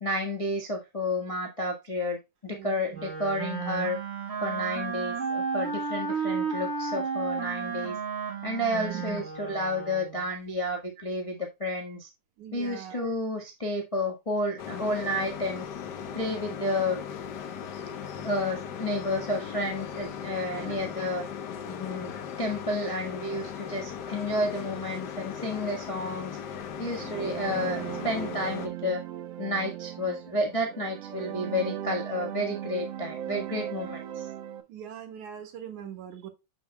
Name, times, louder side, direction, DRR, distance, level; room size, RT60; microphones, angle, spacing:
voice 1, 0.0-4.0 4.4-8.0 8.4-12.1 12.5-15.7 16.1-17.0 18.2-21.2 21.7-22.1 22.4-26.4 26.8-29.0 29.4-34.2, left 1 dB, 30° left, 0.6 m, -31 dB
voice 2, 2.5-3.0 8.7-9.2 12.4-13.1 17.6-17.7 20.5-20.9 34.7-36.3, right 9 dB, 90° right, 3.0 m, -41 dB
Wind instrument woodwind instrument, 2.9-10.3, right 5 dB, 35° right, 1.1 m, -32 dB
sound 1, 14.6-28.7, left 7 dB, 80° left, 0.9 m, -38 dB
sound 2, 26.7-34.6, right 11 dB, 65° right, 1.9 m, -38 dB
7.9 x 6.9 x 2.2 m
omnidirectional pair, 3.3 m